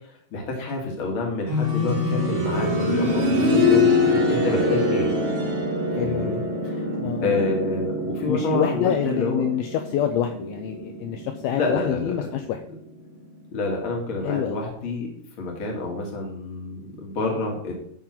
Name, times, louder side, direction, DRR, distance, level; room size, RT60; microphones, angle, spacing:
voice 1, 0.1-5.1 6.0-6.8 7.2-9.4 11.5-12.3 13.5-15.1 15.4-17.7, left 3 dB, 40° left, 0 dB, 2.3 m, -28 dB
sound 1, 1.5-12.2 12.5-12.6 13.5-13.6, left 2 dB, 35° right, 2.3 m, -24 dB
voice 2, 6.0-6.4 7.0-7.3 8.3-12.6 14.2-14.6, left 10 dB, 80° left, 6 dB, 2.3 m, -26 dB
11.5 x 3.9 x 5.9 m, 0.68 s
omnidirectional pair, 4.7 m